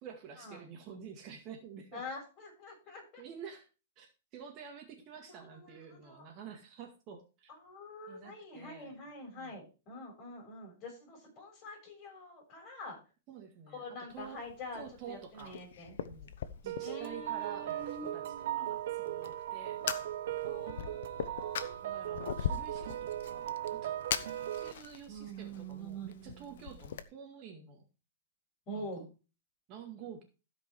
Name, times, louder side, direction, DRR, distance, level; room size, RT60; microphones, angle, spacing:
voice 1, 0.0-2.0 3.2-3.7 4.0-7.5 8.1-9.0 9.4-9.7 13.3-14.4 14.7-15.6 16.0-16.3 16.6-19.8 21.8-24.0 24.6-27.8 28.7-29.0 29.7-30.2, right 7 dB, 35° right, 3 dB, 2.0 m, -49 dB
voice 2, 1.9-3.2 5.3-5.8 6.0-6.2 7.6-13.0 13.7-15.9 16.8-18.7 20.4-21.7 25.1-26.5 28.7-29.1, equal, 30° left, 1 dB, 6.8 m, -46 dB
Fire, 14.1-27.0, left 8 dB, 70° left, 1.0 m, -42 dB
sound 1, 16.7-24.7, right 13 dB, 60° right, 0.5 m, -38 dB
15.5 x 5.4 x 4.7 m, 0.32 s
hypercardioid pair, 150°, 0 cm